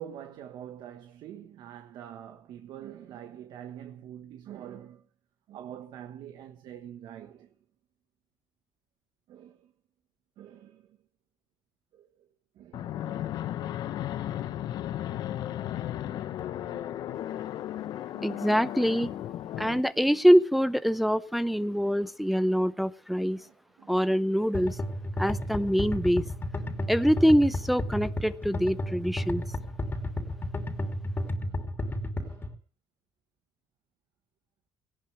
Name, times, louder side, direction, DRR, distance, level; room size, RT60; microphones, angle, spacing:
voice 1, 0.0-5.0 5.5-7.5 9.3-9.7 10.4-11.0 11.9-12.3 12.5-13.4 14.3-14.7 16.0-17.5 18.1-18.5 23.4-24.2 26.6-26.9 29.9-30.4 31.4-32.4, right 10 dB, 65° right, 1.4 m, -46 dB
Fixed-wing aircraft airplane, 12.7-19.8, left 12 dB, 65° left, 1.0 m, -35 dB
voice 2, 18.2-19.1 19.6-23.4 23.9-24.8 25.2-26.2 26.9-29.4, equal, ahead, 0.7 m, -24 dB
sound 1, 24.5-32.5, left 1 dB, 25° left, 2.9 m, -32 dB
18.5 x 17.5 x 3.4 m
cardioid pair, 120°, 8 cm